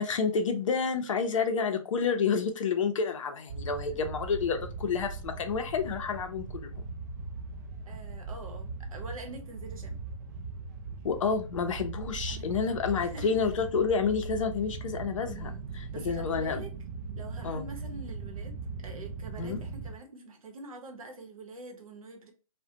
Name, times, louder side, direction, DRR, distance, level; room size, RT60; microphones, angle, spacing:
voice 1, 0.0-6.8 11.0-15.5 15.8-16.6 17.4-17.6 19.4-19.6, left 5 dB, 60° left, 0.5 m, -29 dB
sound 1, 3.5-19.9, right 4 dB, 30° right, 0.3 m, -39 dB
voice 2, 7.9-10.0 12.3-13.3 15.3-16.7 17.2-18.6 18.8-22.3, right 2 dB, 70° right, 0.8 m, -45 dB
2.3 x 2.1 x 2.6 m
hypercardioid pair, 140°, 18 cm